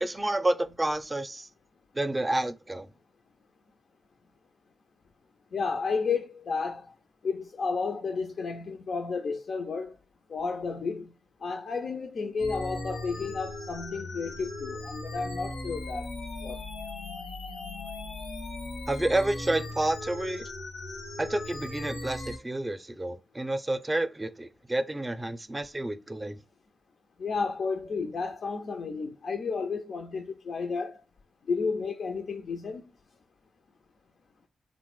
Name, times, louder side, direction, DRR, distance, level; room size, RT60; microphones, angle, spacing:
voice 1, 0.0-1.5 1.9-2.9 18.9-20.4 21.2-26.4, right 1 dB, 25° right, 0.4 m, -29 dB
voice 2, 5.5-6.9 7.2-10.0 10.3-11.1 11.4-16.1 16.4-16.6 27.2-31.0 31.5-32.8, left 4 dB, 70° left, 0.3 m, -32 dB
sound 1, 12.4-22.4, left 2 dB, 90° left, 0.7 m, -38 dB
3.0 x 2.1 x 3.0 m
supercardioid pair, 40°, 0 cm